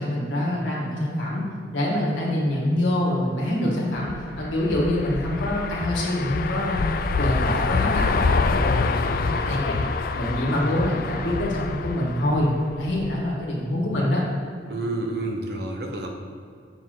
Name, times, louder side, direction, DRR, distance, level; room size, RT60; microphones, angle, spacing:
voice 1, 0.0-1.4 1.7-4.1 4.3-9.7 10.1-12.5 12.8-14.2, left 1 dB, 90° left, -5 dB, 1.7 m, -25 dB
sound 1, 4.0-13.2, left 4 dB, 50° left, 0.3 m, -26 dB
voice 2, 14.7-16.1, right 2 dB, 60° right, 3 dB, 0.9 m, -29 dB
7.1 x 6.1 x 3.8 m, 2.3 s
head